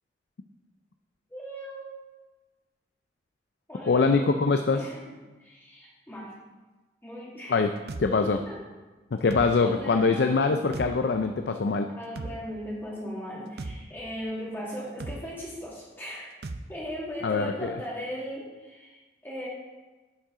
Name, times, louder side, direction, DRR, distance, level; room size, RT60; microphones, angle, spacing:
voice 1, 1.3-1.9 3.7-4.1 4.7-5.1 5.4-6.3 7.0-7.6 8.2-8.6 9.6-10.5 11.9-16.3 16.7-19.5, equal, 10° left, -6 dB, 2.0 m, -38 dB
voice 2, 3.9-4.8 7.5-7.7 8.0-8.4 9.1-11.9 17.2-17.7, left 4 dB, 70° left, 7 dB, 0.4 m, -23 dB
sound 1, 7.9-8.1 9.3-9.5 10.7-10.9 12.2-12.4 13.6-13.8 15.0-15.2 16.4-16.6, right 2 dB, 60° right, 0.6 m, -35 dB
10.5 x 7.4 x 3.7 m, 1.2 s
head